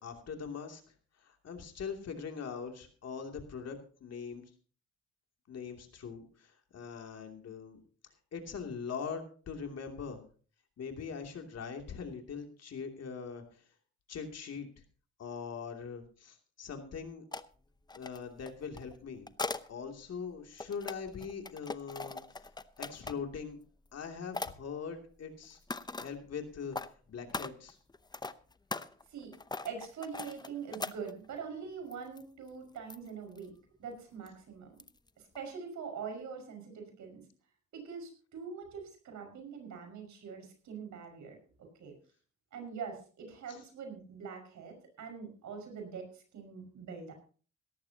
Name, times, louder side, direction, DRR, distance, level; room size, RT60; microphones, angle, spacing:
voice 1, 0.0-0.8 1.2-4.5 5.5-7.8 8.3-10.2 10.8-13.6 14.1-14.7 15.2-17.2 17.9-19.3 19.7-22.2 22.8-23.6 23.9-25.6 26.0-26.8 27.1-27.8 43.5-43.6, left 6 dB, 55° left, 4 dB, 2.8 m, -42 dB
sound 1, 17.3-17.4 17.9-19.7 20.3-23.3 23.9-24.0 24.3-24.5 25.4-26.1 26.6-26.9 27.3-31.4 31.9-32.2 32.5-32.6 32.9-33.5 34.3-34.4 34.8-35.1 35.4-35.5, left 3 dB, 15° left, 0.7 m, -40 dB
voice 2, 29.6-33.5 33.8-34.7 35.2-37.2 37.7-41.4 41.8-42.0 42.5-47.1, right 6 dB, 70° right, 4 dB, 5.6 m, -43 dB
17.0 x 14.0 x 2.9 m, 0.40 s
cardioid pair, 90°, 30 cm